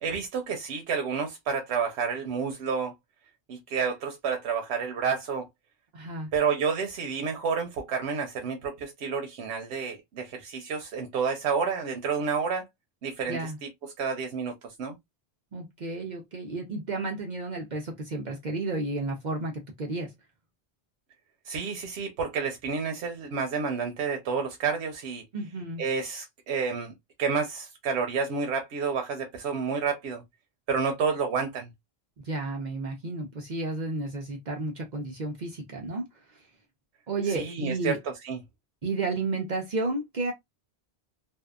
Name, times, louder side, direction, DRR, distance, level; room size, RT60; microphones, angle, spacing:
voice 1, 0.0-2.9 3.5-5.5 6.3-12.7 13.0-15.0 21.5-25.2 25.8-30.2 30.7-31.7 37.3-38.4, right 5 dB, 90° right, 0.9 m, -30 dB
voice 2, 5.9-6.3 13.3-13.6 15.5-20.1 25.3-25.8 32.2-36.0 36.3-36.4 37.1-38.0 38.8-40.3, right 3 dB, 50° right, 0.7 m, -32 dB
2.6 x 2.2 x 2.2 m
omnidirectional pair, 1.1 m